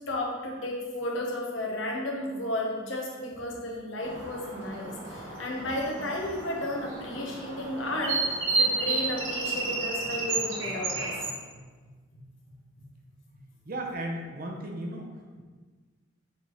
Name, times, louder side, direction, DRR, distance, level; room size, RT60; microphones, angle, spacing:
voice 1, 0.1-11.1, left 1 dB, 75° left, -2 dB, 1.2 m, -33 dB
sound 1, 4.0-11.3, right 3 dB, 75° right, 1.1 m, -32 dB
voice 2, 13.7-15.4, right 1 dB, 45° right, 1 dB, 0.8 m, -36 dB
7.2 x 4.2 x 3.1 m, 1.4 s
head